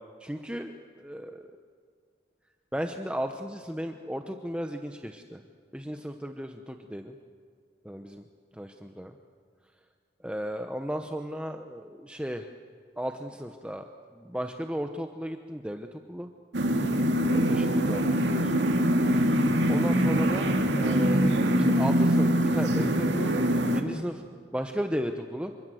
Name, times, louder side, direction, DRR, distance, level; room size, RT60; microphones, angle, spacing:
voice 1, 0.2-1.4 2.7-5.4 5.7-7.1 7.8-8.2 8.5-9.1 10.2-12.5 13.0-13.9 14.2-16.3 17.3-18.5 19.7-23.3 23.7-24.2 24.5-25.5, equal, 5° right, 5 dB, 0.9 m, -35 dB
sound 1, 16.5-23.8, equal, 80° right, 2.4 m, -23 dB
28.0 x 25.0 x 7.8 m, 2.1 s
head